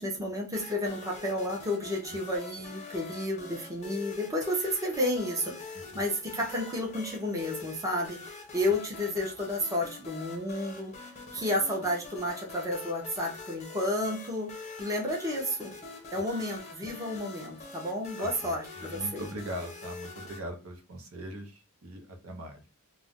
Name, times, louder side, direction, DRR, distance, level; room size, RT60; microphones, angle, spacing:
voice 1, 0.0-10.9 11.3-14.5 14.8-15.7 16.1-19.3, left 1 dB, 15° right, -1 dB, 0.6 m, -31 dB
sound 1, 0.5-20.4, left 4 dB, 30° left, 0.6 m, -45 dB
voice 2, 18.2-18.6 18.9-22.7, equal, 70° right, 4 dB, 0.7 m, -40 dB
2.4 x 2.1 x 3.5 m, 0.30 s
head